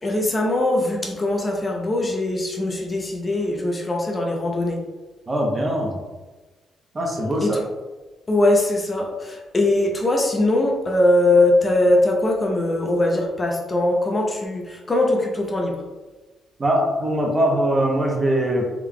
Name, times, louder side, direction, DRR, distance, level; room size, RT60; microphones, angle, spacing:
voice 1, 0.0-4.8 7.4-7.6 8.3-15.8, left 1 dB, 25° left, 0 dB, 0.6 m, -21 dB
voice 2, 5.3-6.0 6.9-7.6 16.6-18.7, right 1 dB, 30° right, 0 dB, 0.8 m, -21 dB
3.6 x 3.3 x 2.2 m, 1.2 s
cardioid pair, 90°, 0 cm